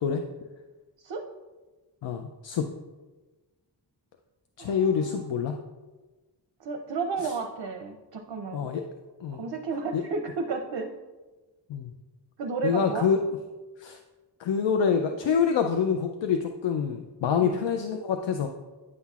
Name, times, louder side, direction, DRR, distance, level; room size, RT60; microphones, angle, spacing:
voice 1, 2.0-2.7 4.6-5.6 8.5-8.8 9.2-9.4 9.9-10.0 11.7-11.9 12.6-13.2 13.8-14.0 14.4-18.5, left 6 dB, 90° left, 5 dB, 0.5 m, -26 dB
voice 2, 4.6-5.3 6.6-8.7 9.3-10.9 12.4-13.1 17.4-17.7, right 4 dB, 65° right, 4 dB, 0.6 m, -33 dB
9.5 x 5.6 x 2.3 m, 1.2 s
wide cardioid pair, 115°, 43 cm